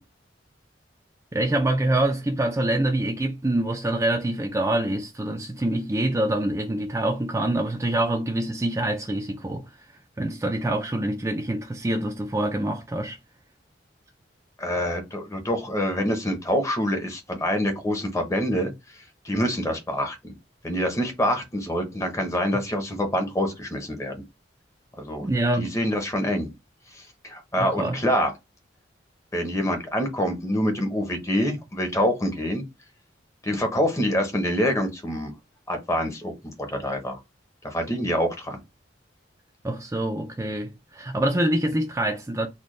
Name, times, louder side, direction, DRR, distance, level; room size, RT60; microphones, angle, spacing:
voice 1, 1.3-9.6 10.2-13.2 25.2-25.7 27.6-28.0 39.6-42.5, right 1 dB, 15° right, 0.4 m, -25 dB
voice 2, 14.6-20.3 20.6-24.2 25.0-25.3 25.6-26.5 26.9-28.3 29.3-32.6 33.4-35.3 35.7-37.2 37.6-38.6, equal, 15° left, 0.8 m, -26 dB
4.2 x 2.2 x 3.1 m
head